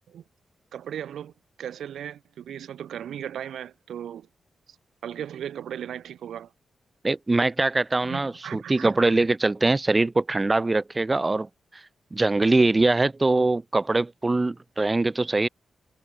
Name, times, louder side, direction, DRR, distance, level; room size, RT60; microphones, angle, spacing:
voice 1, 0.7-1.3 1.6-4.3 5.0-6.5 8.0-8.9, right 9 dB, 80° right, 3.1 m, -36 dB
voice 2, 7.0-11.8 12.1-15.5, right 2 dB, 25° right, 1.3 m, -23 dB
cardioid pair, 60°, 0 cm